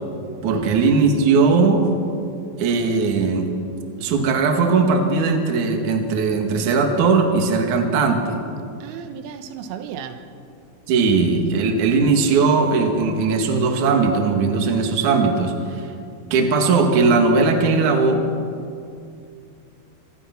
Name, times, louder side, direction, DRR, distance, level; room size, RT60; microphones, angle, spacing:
voice 1, 0.4-1.8 2.6-3.5 4.0-8.4 10.9-15.8 16.3-18.2, right 4 dB, 50° right, 2.7 m, -18 dB
voice 2, 8.8-10.3, right 8 dB, 90° right, 3.6 m, -34 dB
24.5 x 19.5 x 6.0 m
omnidirectional pair, 5.7 m